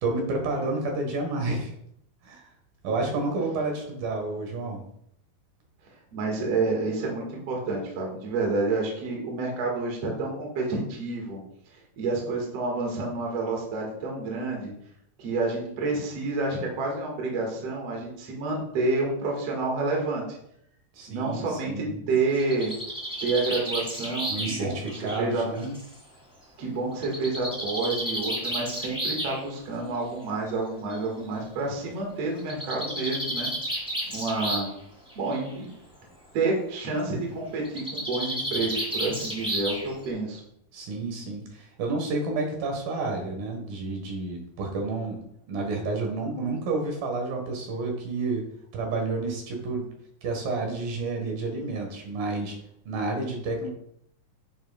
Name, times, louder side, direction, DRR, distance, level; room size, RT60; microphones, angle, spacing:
voice 1, 0.0-1.7 2.2-2.4 2.8-4.8 20.9-22.0 24.3-25.7 40.7-45.2 45.5-48.5 48.7-49.9 50.2-52.6 52.9-53.7, right 3 dB, 75° right, 1 dB, 3.2 m, -30 dB
voice 2, 6.1-11.4 12.0-14.7 15.2-20.2 21.1-22.7 23.2-25.4 26.6-33.5 34.1-34.7 35.2-35.7 36.3-40.4, right 3 dB, 50° right, -1 dB, 2.5 m, -29 dB
Bird, 22.2-25.9 27.0-29.4 30.5-30.6 30.9-31.0 31.2-31.3 32.4-34.8 35.1-35.5 37.6-40.1, right 1 dB, ahead, 1.6 m, -32 dB
9.8 x 7.1 x 2.3 m, 0.72 s
omnidirectional pair, 4.2 m